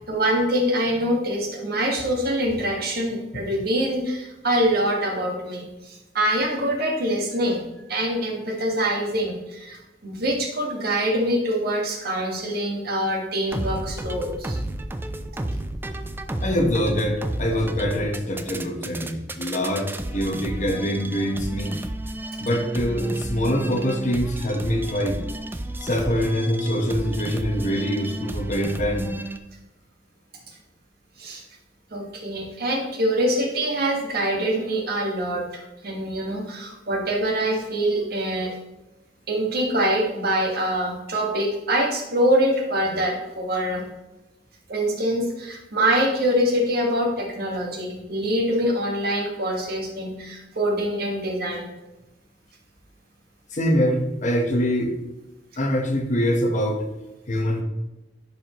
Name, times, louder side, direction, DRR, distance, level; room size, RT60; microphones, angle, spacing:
voice 1, 0.1-7.6 7.9-14.6 31.2-31.4 31.9-38.5 39.3-43.8 44.7-51.7, right 1 dB, 55° right, 0 dB, 1.7 m, -24 dB
New Step Music, 13.5-29.4, right 1 dB, 10° right, 0.4 m, -32 dB
voice 2, 16.4-21.8 22.4-25.2 25.8-29.1 53.5-54.9 55.6-56.8 57.3-57.6, equal, 40° left, 3 dB, 1.1 m, -24 dB
11.0 x 4.7 x 3.0 m, 1.0 s
head